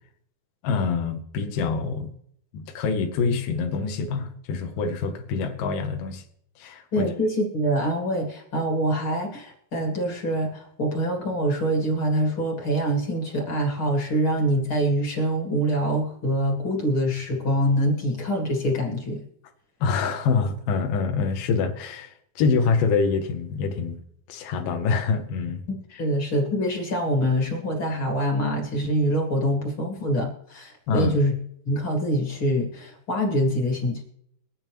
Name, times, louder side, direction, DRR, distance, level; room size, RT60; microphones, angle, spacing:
voice 1, 0.6-2.1 2.5-6.2 6.6-7.1 19.8-24.0 24.3-25.6 30.9-31.2, left 5 dB, 70° left, 4 dB, 2.2 m, -25 dB
voice 2, 6.9-19.2 26.0-31.3 31.7-34.0, equal, 40° left, 1 dB, 2.0 m, -25 dB
23.0 x 9.0 x 3.1 m, 0.68 s
omnidirectional pair, 4.5 m